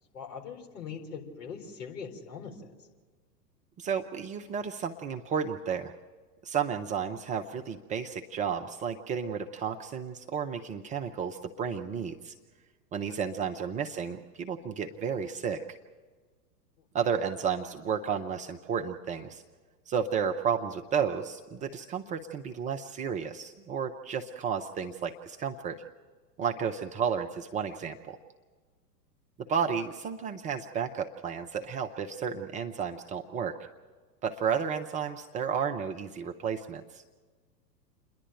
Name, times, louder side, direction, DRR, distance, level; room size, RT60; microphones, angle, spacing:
voice 1, 0.1-2.7 13.5-13.6, left 6 dB, 65° left, 1 dB, 4.3 m, -41 dB
voice 2, 3.8-5.9 6.4-12.3 12.9-15.7 16.9-19.4 19.9-25.8 26.4-28.2 29.4-33.6 34.2-37.0, right 7 dB, 15° right, 4 dB, 0.5 m, -32 dB
28.5 x 11.0 x 8.9 m, 1.4 s
figure-of-eight pair, 105°, 49 cm